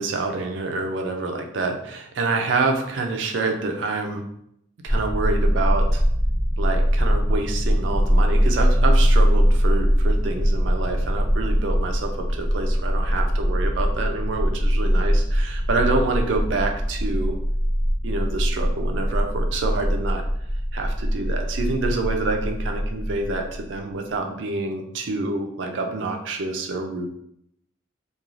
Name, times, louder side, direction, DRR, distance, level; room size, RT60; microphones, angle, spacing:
voice 1, 0.0-4.2 4.8-6.0 6.6-17.4 18.0-20.2 20.7-27.1, right 3 dB, 65° right, 3 dB, 0.4 m, -27 dB
sound 1, 4.9-23.7, equal, 15° right, 0.6 m, -22 dB
3.0 x 2.3 x 2.5 m, 0.73 s
head